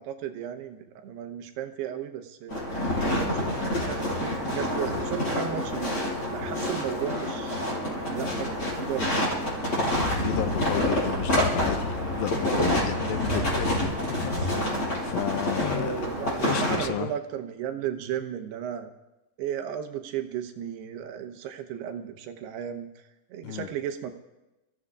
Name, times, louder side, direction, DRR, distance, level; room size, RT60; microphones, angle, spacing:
voice 1, 0.0-2.6 3.0-3.5 3.8-5.9 6.3-7.6 7.9-9.1 13.3-13.5 15.7-18.9 19.4-22.9 23.3-24.1, right 9 dB, 90° right, 7 dB, 3.1 m, -34 dB
sound 1, 2.5-16.9, left 1 dB, 25° left, 5.1 m, -27 dB
voice 2, 10.1-14.4 15.0-16.0 16.3-17.1 23.4-23.7, left 11 dB, 80° left, 10 dB, 2.1 m, -32 dB
29.0 x 15.5 x 2.5 m, 0.99 s
omnidirectional pair, 4.6 m